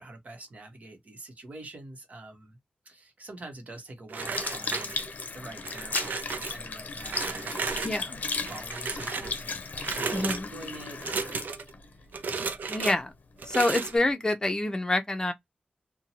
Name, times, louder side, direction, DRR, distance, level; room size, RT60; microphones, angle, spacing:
voice 1, 0.0-2.6 2.8-8.2 8.5-11.5 12.0-12.1, right 2 dB, 60° right, 1.0 m, -46 dB
sound 1, 4.1-5.2 5.6-6.5 7.1-8.0 8.4-9.3 9.8-10.4 11.0-11.7 12.1-13.0 13.4-14.0, right 5 dB, 80° right, 0.5 m, -34 dB
Sink (filling or washing) / Liquid, 4.2-12.8 13.4-13.5, left 4 dB, 65° left, 0.6 m, -36 dB
voice 2, 10.1-10.5 12.7-13.1 13.4-15.3, left 2 dB, 25° left, 0.6 m, -27 dB
2.6 x 2.2 x 2.8 m
wide cardioid pair, 75°, 3 cm